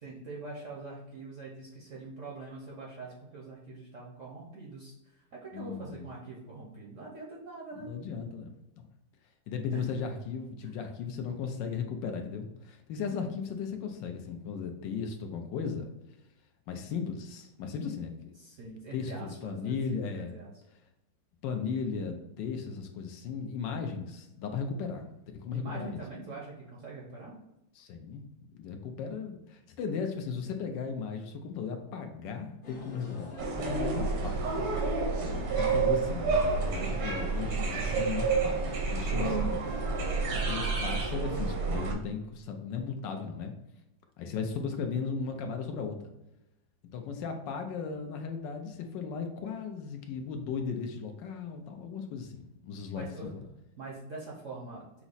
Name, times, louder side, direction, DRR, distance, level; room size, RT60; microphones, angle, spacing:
voice 1, 0.0-7.9 9.7-9.8 10.6-10.7 18.4-20.5 25.5-27.3 52.9-53.3 53.8-54.9, right 3 dB, 60° right, -3 dB, 0.8 m, -44 dB
voice 2, 5.5-6.0 7.8-8.5 8.8-8.9 9.5-15.9 16.7-18.3 18.9-20.3 21.4-25.1 25.3-26.0 27.8-28.2 28.5-34.8 35.5-39.9 40.3-43.5 44.2-46.1 46.9-53.4, left 5 dB, 75° left, 5 dB, 1.2 m, -36 dB
sound 1, 32.6-40.6, left 1 dB, 45° left, 0.7 m, -48 dB
sound 2, 33.4-41.9, right 4 dB, 80° right, 1.6 m, -29 dB
5.8 x 2.0 x 4.0 m, 0.91 s
omnidirectional pair, 2.1 m